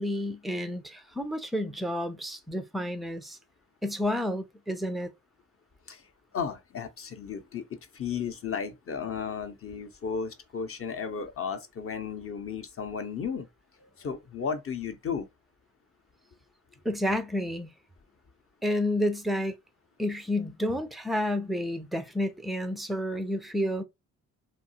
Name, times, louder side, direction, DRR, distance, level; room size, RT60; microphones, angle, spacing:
voice 1, 0.0-3.4 3.8-5.1 16.9-17.7 18.6-19.5 20.0-23.8, left 1 dB, ahead, 0.3 m, -30 dB
voice 2, 6.3-7.7 7.9-13.5 14.0-15.3, left 6 dB, 35° left, 0.7 m, -34 dB
2.8 x 2.3 x 2.7 m
hypercardioid pair, 40°, 42 cm